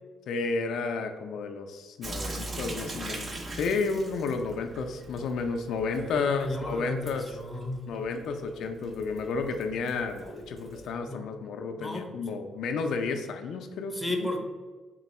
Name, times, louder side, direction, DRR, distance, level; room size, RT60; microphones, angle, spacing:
voice 1, 0.3-7.4 7.9-14.3, left 4 dB, 75° left, 5 dB, 0.3 m, -32 dB
Sink (filling or washing) / Drip, 2.0-10.9, right 2 dB, 30° right, 0.5 m, -41 dB
voice 2, 6.1-7.8 11.1-11.2 11.8-12.3 13.9-14.4, left 1 dB, 5° left, 2 dB, 0.7 m, -34 dB
4.1 x 2.2 x 4.1 m, 1.4 s
cardioid pair, 90°, 0 cm